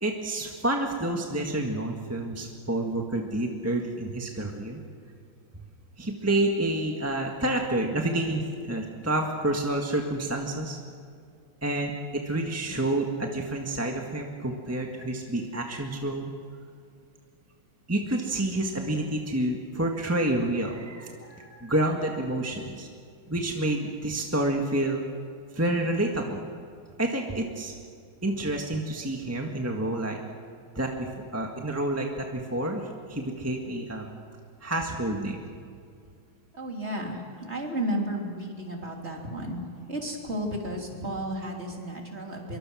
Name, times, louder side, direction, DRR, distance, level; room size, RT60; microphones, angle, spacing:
voice 1, 0.0-4.8 6.0-10.8 11.6-16.3 17.9-22.9 23.3-25.0 25.5-26.5 27.0-27.7 28.2-30.2 30.7-34.1 34.6-35.4, right 1 dB, 10° right, 1 dB, 1.5 m, -29 dB
voice 2, 36.5-39.6 39.9-42.6, right 1 dB, 30° right, 0 dB, 3.4 m, -33 dB
25.5 x 23.5 x 6.3 m, 2.2 s
omnidirectional pair, 2.3 m